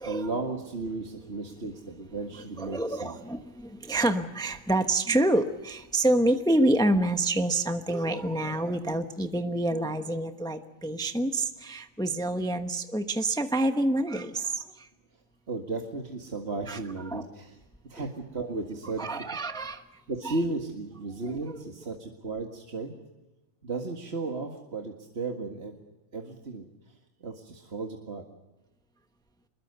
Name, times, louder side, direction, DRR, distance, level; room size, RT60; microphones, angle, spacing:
voice 1, 0.0-3.2 15.5-17.6 17.9-19.2 20.1-22.9 23.6-25.8 26.1-26.7 27.2-28.2, right 3 dB, 50° right, 2 dB, 2.1 m, -34 dB
voice 2, 2.6-14.9 16.7-16.8 17.0-17.3 18.0-18.1 19.0-19.8 20.2-20.4 21.4-21.5, right 1 dB, 5° left, 7 dB, 1.0 m, -27 dB
26.0 x 22.0 x 6.8 m, 1.1 s
omnidirectional pair, 1.5 m